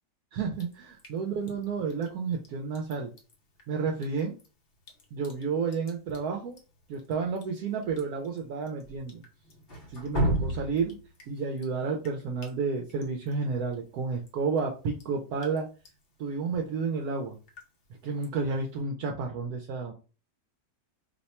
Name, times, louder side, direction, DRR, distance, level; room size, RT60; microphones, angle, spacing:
voice 1, 0.3-3.1 3.7-4.3 5.1-6.6 6.9-9.2 9.9-11.0 11.3-15.7 16.2-17.4 18.0-19.9, right 5 dB, 75° right, 1 dB, 1.0 m, -31 dB
Drip, 0.5-18.8, right 1 dB, 50° left, 0.7 m, -40 dB
2.8 x 2.2 x 4.1 m, 0.33 s
omnidirectional pair, 1.7 m